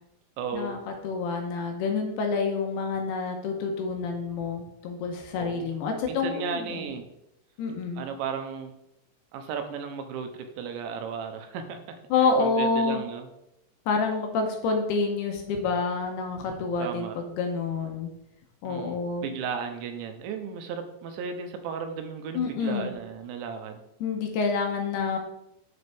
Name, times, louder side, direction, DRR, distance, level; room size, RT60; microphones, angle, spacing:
voice 1, 0.4-0.8 5.4-5.7 6.1-7.0 8.0-8.7 9.3-11.8 12.4-13.3 16.8-17.2 18.6-23.8, right 6 dB, 90° right, 6 dB, 3.1 m, -35 dB
voice 2, 1.0-6.9 7.6-8.1 12.1-13.0 13.9-18.1 18.6-19.3 22.3-22.9 24.0-25.2, left 4 dB, 75° left, 3 dB, 2.6 m, -28 dB
11.0 x 5.3 x 3.5 m, 0.84 s
omnidirectional pair, 5.1 m